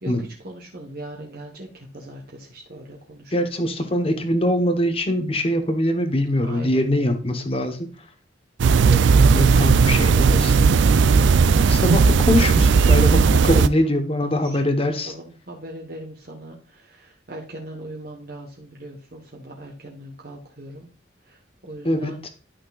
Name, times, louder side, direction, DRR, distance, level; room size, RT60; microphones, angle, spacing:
voice 1, 0.0-3.5 6.4-6.8 8.7-10.8 13.2-13.9 14.2-20.9 21.2-22.2, right 1 dB, 50° right, -1 dB, 1.2 m, -39 dB
voice 2, 3.3-7.8 9.3-10.5 11.7-13.2 13.4-15.1 21.8-22.3, left 1 dB, 30° left, 7 dB, 1.0 m, -22 dB
sound 1, 8.6-13.7, right 5 dB, 70° right, 0.4 m, -16 dB
11.5 x 5.9 x 2.4 m, 0.39 s
head